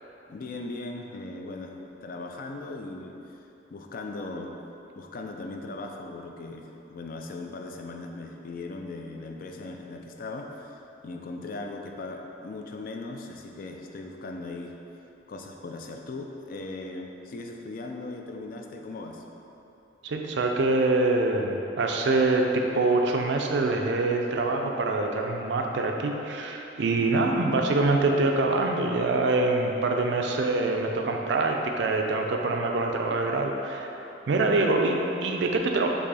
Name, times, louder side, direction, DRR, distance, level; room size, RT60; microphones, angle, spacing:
voice 1, 0.3-3.4 3.7-4.5 5.0-14.8 15.3-19.2, left 2 dB, 50° left, 3 dB, 0.3 m, -38 dB
voice 2, 20.0-33.9 34.3-35.9, right 2 dB, 65° right, 2 dB, 0.4 m, -25 dB
4.7 x 2.7 x 4.1 m, 3.0 s
head